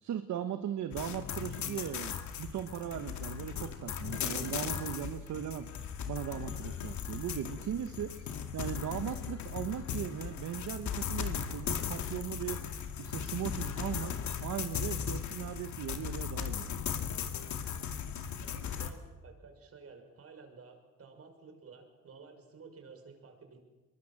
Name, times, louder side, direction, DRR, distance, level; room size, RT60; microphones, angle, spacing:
voice 1, 0.0-5.7 6.1-12.6 13.0-14.1 14.4-16.7, right 10 dB, 70° right, 9 dB, 1.3 m, -38 dB
sound 1, 0.9-18.9, left 8 dB, 70° left, 2.3 m, -37 dB
voice 2, 18.4-23.6, right 5 dB, 50° right, 5 dB, 6.0 m, -53 dB
23.0 x 22.0 x 7.5 m, 1.2 s
cardioid pair, 90°, 30 cm